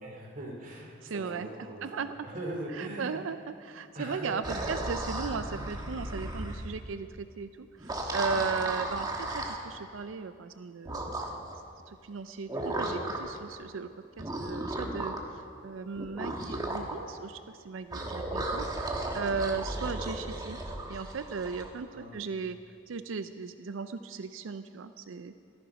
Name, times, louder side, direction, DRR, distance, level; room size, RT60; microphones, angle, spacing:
voice 1, 0.0-3.2 3.9-4.8 8.2-8.4 16.3-16.4 21.9-22.2, right 1 dB, 45° right, -1 dB, 2.6 m, -41 dB
voice 2, 1.0-2.1 2.7-11.3 11.9-20.6 20.9-22.6 22.9-25.3, right 5 dB, 80° right, 11 dB, 0.5 m, -37 dB
sound 1, 4.4-6.7 7.8-9.6 10.9-11.6 12.5-13.4 14.2-15.3 16.0-17.0 17.9-21.7, right 1 dB, 20° right, 1.3 m, -35 dB
14.5 x 13.5 x 5.8 m, 2.4 s
head